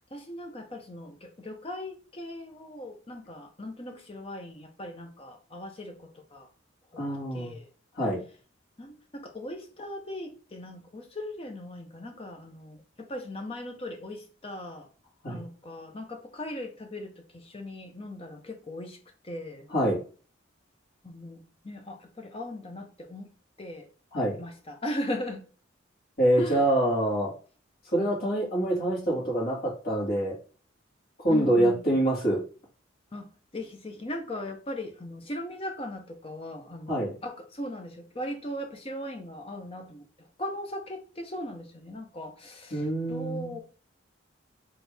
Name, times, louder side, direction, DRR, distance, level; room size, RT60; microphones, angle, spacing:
voice 1, 0.1-6.5 6.9-7.0 7.3-7.7 8.8-14.9 15.2-19.0 19.2-19.7 21.0-23.3 23.6-23.9 24.4-25.4 26.4-26.7 31.3-31.8 33.1-43.6, left 1 dB, 30° left, 0.8 m, -38 dB
voice 2, 7.0-7.5 8.0-8.2 15.2-15.4 19.7-20.0 24.1-24.4 26.2-27.3 27.9-30.3 31.2-32.4 36.9-37.1 42.7-43.5, right 1 dB, 50° left, 2.2 m, -25 dB
4.4 x 3.4 x 3.4 m
head